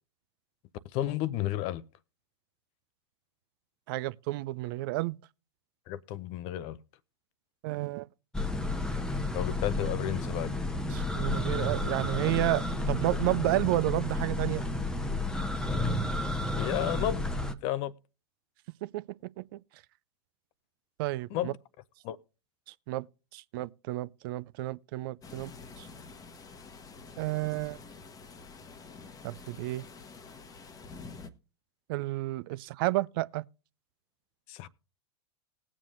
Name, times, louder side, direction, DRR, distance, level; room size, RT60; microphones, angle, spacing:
voice 1, 0.9-1.8 5.9-6.8 9.3-10.6 16.6-17.3 17.6-17.9 21.3-21.6 22.0-22.2 34.5-34.7, left 13 dB, 45° left, 0.5 m, -32 dB
voice 2, 3.9-5.2 7.6-8.1 10.9-14.6 18.8-19.0 19.4-19.6 21.0-21.5 22.9-23.0 23.3-25.9 27.2-27.8 29.2-29.8 31.9-33.4, right 18 dB, 50° right, 0.4 m, -31 dB
sound 1, 8.3-17.5, left 2 dB, 5° left, 0.8 m, -31 dB
sound 2, 25.2-31.3, left 4 dB, 25° left, 1.0 m, -48 dB
19.5 x 7.4 x 2.5 m
figure-of-eight pair, 90°, 15 cm